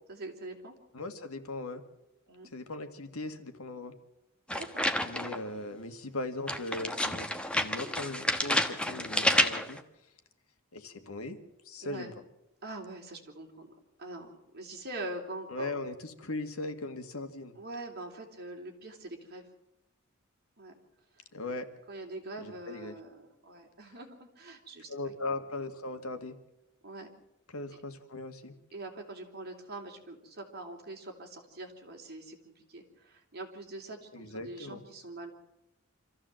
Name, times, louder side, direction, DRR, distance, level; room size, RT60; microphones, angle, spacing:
voice 1, 0.1-0.8 2.3-2.5 4.5-4.9 11.8-12.1 12.6-13.7 14.0-15.8 17.5-19.5 20.6-20.7 21.2-21.3 21.9-25.1 26.8-27.1 28.7-35.3, right 2 dB, 50° right, 2 dB, 3.4 m, -43 dB
voice 2, 0.9-1.8 2.5-3.9 5.0-9.8 10.7-11.4 11.7-12.1 15.5-17.6 21.3-21.7 22.4-23.0 24.9-26.4 27.5-28.5 34.1-34.8, left 2 dB, 85° left, 8 dB, 1.8 m, -39 dB
sound 1, 4.5-5.5 6.5-9.8, left 1 dB, 5° left, 1.2 m, -29 dB
25.5 x 14.5 x 7.7 m, 0.91 s
head